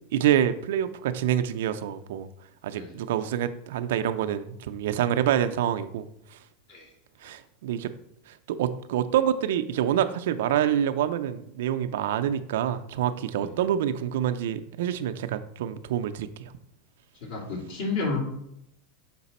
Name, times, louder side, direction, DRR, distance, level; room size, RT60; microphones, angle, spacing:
voice 1, 0.1-2.3 2.6-6.4 7.2-7.9 8.5-16.5, right 10 dB, 75° right, 9 dB, 0.4 m, -27 dB
voice 2, 17.2-18.2, left 3 dB, 70° left, -2 dB, 2.3 m, -31 dB
5.8 x 4.0 x 4.2 m, 0.78 s
hypercardioid pair, 110°, 0 cm